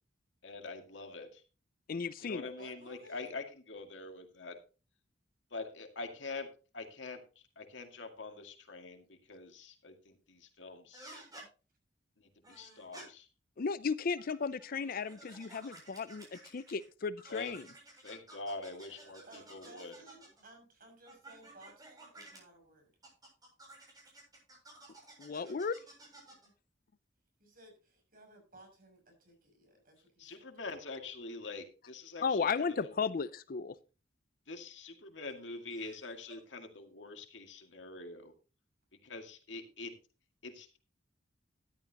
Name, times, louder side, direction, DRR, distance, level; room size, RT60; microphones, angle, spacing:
voice 1, 0.4-1.4 2.2-4.6 5.5-6.5 6.7-11.1 12.2-13.3 17.3-17.6 18.0-19.9 30.2-32.9 34.5-38.3 39.0-39.9 40.4-40.8, left 3 dB, 85° left, 2.1 m, -45 dB
voice 2, 1.9-2.5 13.6-17.7 25.2-25.8 32.2-33.8, left 5 dB, 50° left, 0.5 m, -35 dB
voice 3, 2.6-3.3 19.3-22.9 25.3-25.5 27.4-30.4 35.3-36.4, right 1 dB, 50° right, 6.6 m, -58 dB
sound 1, 10.9-11.5 12.4-13.0 14.1-16.8 17.2-20.4 21.1-22.4 23.0-26.5, right 2 dB, 20° right, 7.7 m, -54 dB
13.0 x 11.5 x 2.9 m
head